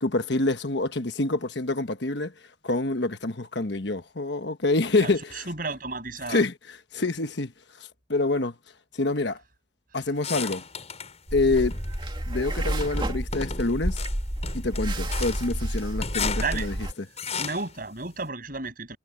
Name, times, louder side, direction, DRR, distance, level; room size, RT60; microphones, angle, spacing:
voice 1, 0.0-2.3 2.6-5.5 6.3-6.5 6.9-7.5 8.1-8.5 8.9-9.4 9.9-10.6 11.3-11.8 12.3-14.0 14.5-16.7, left 2 dB, 60° left, 1.3 m, -26 dB
voice 2, 5.0-6.4 16.4-16.7 17.4-19.0, right 3 dB, 45° right, 6.9 m, -33 dB
sound 1, 10.2-11.2 11.6-12.1 12.8-17.8, left 6 dB, 35° left, 6.7 m, -35 dB
sound 2, 11.3-16.9, equal, 25° right, 2.3 m, -30 dB
head